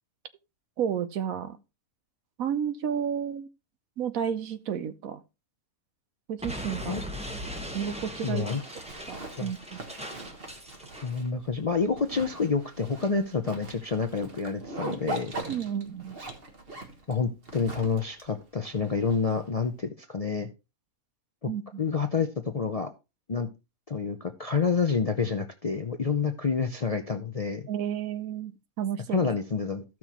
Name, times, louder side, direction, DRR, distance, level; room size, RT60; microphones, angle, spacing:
voice 1, 0.8-1.6 2.4-3.5 4.0-5.2 6.3-7.0 7.7-8.5 9.1-9.8 15.5-16.2 21.5-21.8 27.7-28.5 28.8-29.3, right 8 dB, 75° right, 1.2 m, -31 dB
Explosion, 6.4-11.2, equal, 5° right, 1.0 m, -39 dB
Zipper (clothing), 7.2-19.7, right 2 dB, 45° right, 1.7 m, -42 dB
voice 2, 8.2-8.6 9.4-9.5 11.0-15.3 17.1-20.5 21.8-22.3 22.5-22.9 23.3-23.5 23.9-27.7 29.1-29.8, left 5 dB, 40° left, 0.5 m, -28 dB
14.5 x 6.1 x 2.9 m
omnidirectional pair, 1.5 m